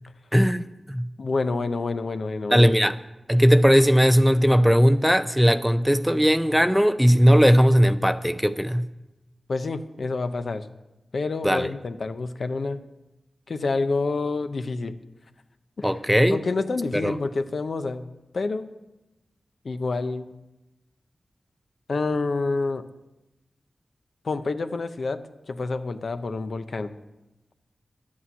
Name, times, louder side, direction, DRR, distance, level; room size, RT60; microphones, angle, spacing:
voice 1, 0.3-1.0 2.5-3.0 3.3-8.8 11.4-11.7 15.8-16.4 16.9-17.2, equal, ahead, 11 dB, 0.5 m, -18 dB
voice 2, 1.2-2.8 9.5-10.7 11.1-12.8 13.5-14.9 15.8-15.9 16.3-18.1 18.3-18.7 19.6-20.3 21.9-22.8 24.2-25.2 25.5-26.9, left 3 dB, 65° left, 9 dB, 0.8 m, -28 dB
11.0 x 8.6 x 8.6 m, 0.98 s
wide cardioid pair, 110°, 0 cm